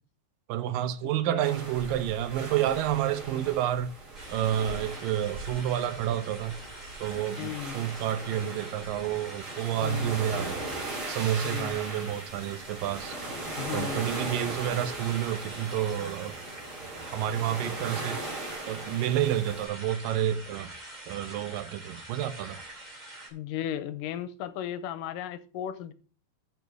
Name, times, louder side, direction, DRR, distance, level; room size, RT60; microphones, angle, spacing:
voice 1, 0.5-3.9 4.3-6.6 7.0-10.6 11.1-13.2 13.7-16.4 17.1-18.2 18.7-20.7 21.1-22.6, right 11 dB, 85° right, 2.4 m, -29 dB
sound 1, 1.4-19.7, right 2 dB, 30° right, 2.8 m, -39 dB
sound 2, 4.1-23.3, right 1 dB, 15° right, 2.0 m, -45 dB
voice 2, 7.4-7.8 9.8-10.2 11.4-11.8 13.6-14.1 23.3-25.9, left 10 dB, 90° left, 2.3 m, -35 dB
7.0 x 6.1 x 6.0 m
omnidirectional pair, 3.9 m